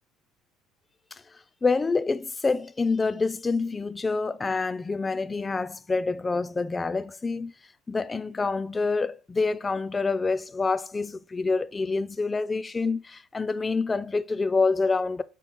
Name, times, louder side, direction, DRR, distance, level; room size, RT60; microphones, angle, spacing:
voice 1, 1.6-7.5 7.9-15.2, left 4 dB, 20° left, 0.3 m, -27 dB
4.5 x 2.9 x 3.5 m
supercardioid pair, 95°, 0 cm